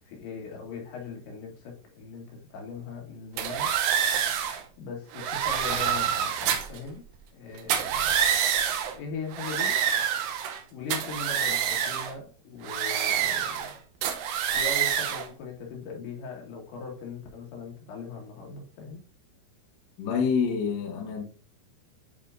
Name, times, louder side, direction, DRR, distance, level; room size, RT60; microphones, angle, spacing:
voice 1, 0.1-3.7 4.8-7.0 7.3-8.3 9.0-9.7 10.7-13.8 14.5-19.0, left 4 dB, 80° left, 4.2 m, -39 dB
sound 1, 3.4-4.6 5.1-6.8 7.6-9.0 9.3-10.6 10.9-12.1 12.7-13.7 14.0-15.3, right 8 dB, 80° right, 3.0 m, -27 dB
voice 2, 20.0-21.2, left 6 dB, 60° left, 2.5 m, -27 dB
10.5 x 4.7 x 2.6 m
omnidirectional pair, 5.2 m